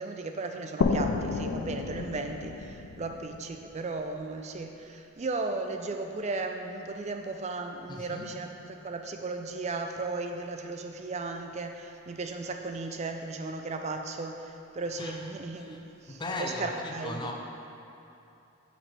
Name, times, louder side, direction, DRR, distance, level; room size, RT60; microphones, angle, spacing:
voice 1, 0.0-17.3, right 3 dB, 35° right, 5 dB, 0.4 m, -36 dB
sound 1, 0.8-4.3, left 4 dB, 70° left, 0.4 m, -31 dB
voice 2, 7.9-8.3 15.0-17.3, left 2 dB, 20° left, 1 dB, 0.6 m, -38 dB
8.5 x 5.2 x 3.3 m, 2.9 s
head